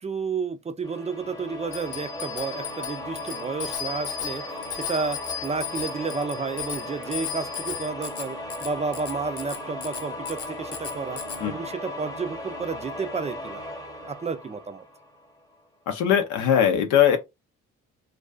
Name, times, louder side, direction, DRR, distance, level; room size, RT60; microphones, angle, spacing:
voice 1, 0.0-11.2 11.5-13.6 14.0-14.8, right 4 dB, 20° right, 0.4 m, -31 dB
sound 1, 0.8-15.4, left 1 dB, 10° left, 0.8 m, -37 dB
Bicycle bell, 1.7-11.4, left 9 dB, 50° left, 0.7 m, -36 dB
voice 2, 15.9-17.2, left 9 dB, 85° left, 0.6 m, -20 dB
2.4 x 2.3 x 2.3 m
cardioid pair, 90°, 30 cm